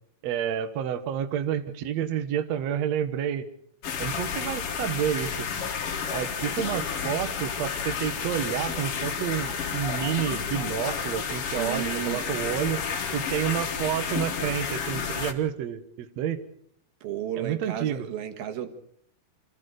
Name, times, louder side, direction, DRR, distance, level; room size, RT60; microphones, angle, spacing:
voice 1, 0.2-3.5 4.0-5.5 6.1-12.8 13.1-16.4 17.3-18.1, right 9 dB, 90° right, 8 dB, 1.5 m, -29 dB
sound 1, 3.8-15.3, left 6 dB, 55° left, 1.6 m, -31 dB
voice 2, 11.5-12.2 17.0-18.7, right 10 dB, 65° right, 5 dB, 3.1 m, -33 dB
26.5 x 15.5 x 6.5 m, 0.68 s
omnidirectional pair, 5.0 m